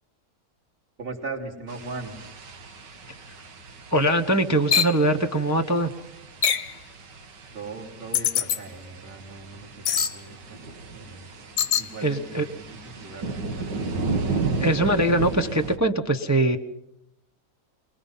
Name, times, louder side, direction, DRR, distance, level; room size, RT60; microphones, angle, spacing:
voice 1, 1.0-2.2 7.5-11.3 11.7-13.3 13.6-14.0, right 3 dB, 30° right, -1 dB, 3.4 m, -39 dB
sound 1, 1.7-15.8, right 4 dB, 90° right, 2.2 m, -34 dB
voice 2, 3.9-5.9 12.0-12.4 14.6-16.6, right 1 dB, 15° right, 5 dB, 0.7 m, -22 dB
sound 2, 4.7-5.0 6.4-6.7 8.1-8.6 9.8-10.2 11.6-11.9, left 8 dB, 60° left, 1.3 m, -22 dB
25.5 x 20.5 x 5.6 m, 0.80 s
omnidirectional pair, 1.8 m